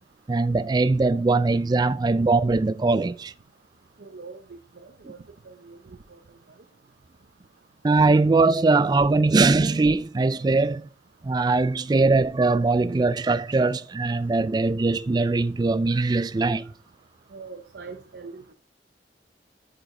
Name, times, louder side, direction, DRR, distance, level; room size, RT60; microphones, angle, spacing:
voice 1, 0.3-3.3 5.0-5.1 7.8-10.9 11.2-16.7, right 3 dB, 25° right, 0.3 m, -21 dB
voice 2, 4.0-5.2 5.4-6.2 17.3-18.5, right 4 dB, 70° right, 0.6 m, -43 dB
10.5 x 5.0 x 3.7 m
head